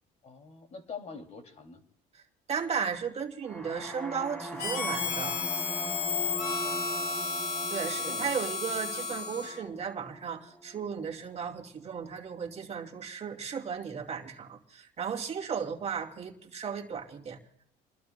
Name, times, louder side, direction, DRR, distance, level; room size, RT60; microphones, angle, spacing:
voice 1, 0.2-1.8 6.3-6.9 8.0-8.3, left 5 dB, 40° left, 5 dB, 2.5 m, -45 dB
voice 2, 2.5-5.4 7.7-17.4, right 6 dB, 35° right, 2 dB, 2.4 m, -35 dB
sound 1, 3.4-11.3, equal, 5° left, 3.5 m, -41 dB
Harmonica, 4.6-9.6, left 4 dB, 60° left, 2.5 m, -33 dB
28.5 x 21.0 x 2.2 m, 0.74 s
cardioid pair, 100°, 18 cm